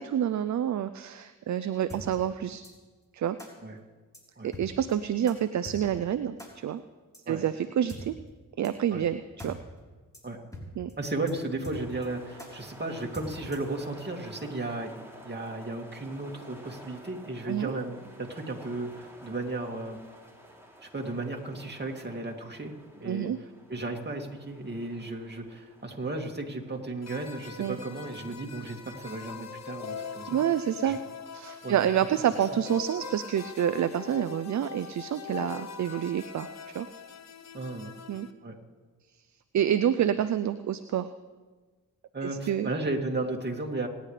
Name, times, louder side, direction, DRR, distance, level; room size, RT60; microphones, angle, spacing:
voice 1, 0.0-2.6 3.1-3.4 4.4-6.8 7.3-8.1 8.6-9.6 10.8-10.9 17.5-17.7 23.0-23.4 27.6-27.8 30.3-31.0 31.3-36.9 38.1-38.3 39.5-41.1 42.2-42.7, right 10 dB, 55° right, 11 dB, 0.5 m, -28 dB
sound 1, 1.9-2.0 2.6-2.7 3.4-3.5 4.1-4.2 4.5-4.6 4.9-5.0 5.3-5.4 5.6-5.8 6.4-6.5 7.1-7.2 7.9-8.0 8.6-8.7 9.0-9.1 9.4-9.5 9.8-9.9 10.1-10.2 10.5-10.6 10.9-11.0 11.3-11.4 11.6-12.1 12.4-12.5 13.1-13.7, left 1 dB, 10° left, 3.8 m, -42 dB
voice 2, 11.0-20.0 20.8-22.7 23.0-23.3 23.7-30.4 30.8-31.0 31.6-31.8 37.5-37.9 38.4-38.6 42.1-43.9, right 2 dB, 30° right, 2 dB, 2.3 m, -34 dB
sound 2, 11.7-30.5, right 1 dB, 10° right, 3.1 m, -52 dB
sound 3, 27.0-38.3, left 6 dB, 50° left, 1.0 m, -42 dB
26.0 x 10.5 x 3.3 m, 1.4 s
cardioid pair, 50°, 34 cm